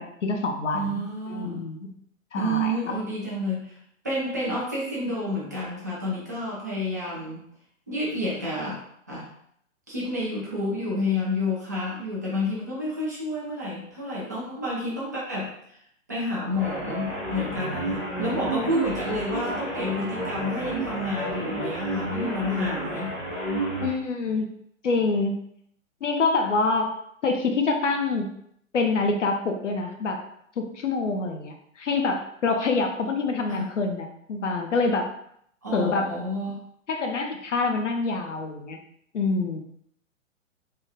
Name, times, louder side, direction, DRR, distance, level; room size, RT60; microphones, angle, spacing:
voice 1, 0.0-1.0 1.3-1.9 2.3-2.9 23.8-24.5 24.8-25.3 26.0-26.9 27.2-28.3 28.7-30.2 30.6-35.1 35.7-36.1 36.9-38.8 39.1-39.6, left 3 dB, 65° left, 4 dB, 0.7 m, -26 dB
voice 2, 0.7-1.7 2.3-3.8 4.0-7.5 7.9-8.8 9.1-9.3 9.9-15.8 16.1-23.1 33.5-33.7 35.6-36.7, left 1 dB, 15° right, -6 dB, 0.3 m, -29 dB
sound 1, 16.5-24.0, right 1 dB, 5° left, 0.7 m, -31 dB
3.4 x 2.2 x 2.9 m, 0.69 s
figure-of-eight pair, 120°, 39 cm